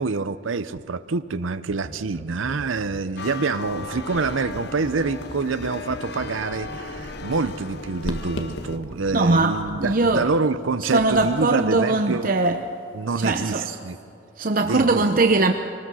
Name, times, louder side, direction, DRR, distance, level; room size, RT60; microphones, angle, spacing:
voice 1, 0.0-12.3 12.9-14.0 14.6-15.0, right 4 dB, 80° right, 12 dB, 0.6 m, -26 dB
sound 1, 1.7-3.0 3.8-7.8 8.6-10.2 11.0-11.2, equal, 5° left, 3.5 m, -39 dB
sound 2, 3.2-8.8, left 3 dB, 55° left, 0.9 m, -36 dB
sound 3, 3.7-11.5, left 1 dB, 80° left, 1.7 m, -41 dB
voice 2, 9.1-10.3 10.8-12.6 13.2-13.8 14.4-15.5, right 2 dB, 45° right, 5 dB, 0.8 m, -21 dB
24.5 x 19.5 x 6.3 m, 2.9 s
head